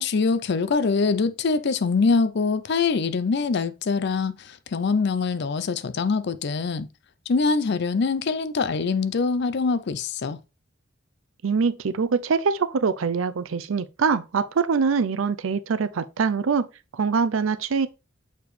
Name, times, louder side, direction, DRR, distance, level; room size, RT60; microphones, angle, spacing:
voice 1, 0.0-6.9 7.3-10.4, left 4 dB, 55° left, 0.5 m, -24 dB
voice 2, 11.4-16.7 16.9-17.9, right 5 dB, 80° right, 0.5 m, -24 dB
6.7 x 5.0 x 3.2 m
head